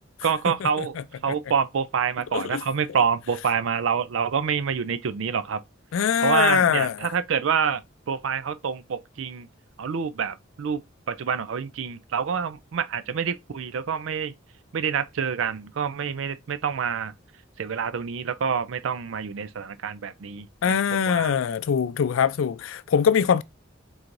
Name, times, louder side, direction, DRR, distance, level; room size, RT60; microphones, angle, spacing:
voice 1, 0.2-1.0 1.2-5.6 6.2-7.8 8.1-9.5 9.8-10.8 11.1-14.3 14.7-17.1 17.6-21.3, right 6 dB, 75° right, 0.4 m, -27 dB
voice 2, 5.9-7.1 20.6-23.4, left 7 dB, 85° left, 0.4 m, -22 dB
4.5 x 3.9 x 2.5 m
head